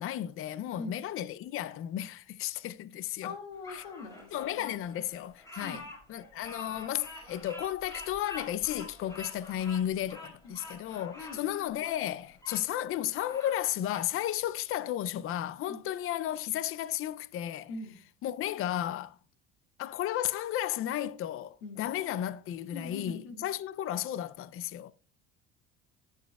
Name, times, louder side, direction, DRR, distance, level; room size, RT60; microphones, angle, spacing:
voice 1, 0.0-3.3 3.7-3.8 4.3-17.7 18.2-19.2 19.8-24.9, left 12 dB, 45° left, 0.5 m, -34 dB
voice 2, 3.2-4.7 5.6-5.8 10.4-10.6 11.1-11.4 15.7-15.8 17.7-18.0 21.6-21.9 22.7-23.4, left 3 dB, 85° left, 2.1 m, -42 dB
Bird vocalization bird call bird song, 3.6-12.6 13.1-14.1, left 2 dB, 10° left, 4.8 m, -47 dB
18.5 x 7.1 x 2.3 m
supercardioid pair, 90°, 31 cm